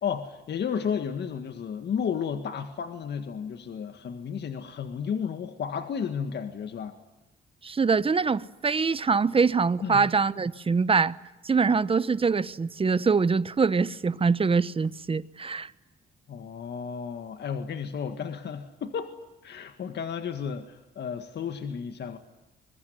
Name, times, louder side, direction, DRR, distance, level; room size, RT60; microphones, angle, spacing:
voice 1, 0.0-7.0 9.8-10.0 16.3-19.1 19.4-22.2, left 7 dB, 60° left, 1.9 m, -33 dB
voice 2, 7.6-11.2 11.4-15.7, right 5 dB, 30° right, 1.0 m, -24 dB
25.5 x 22.0 x 9.5 m
cardioid pair, 90°, 20 cm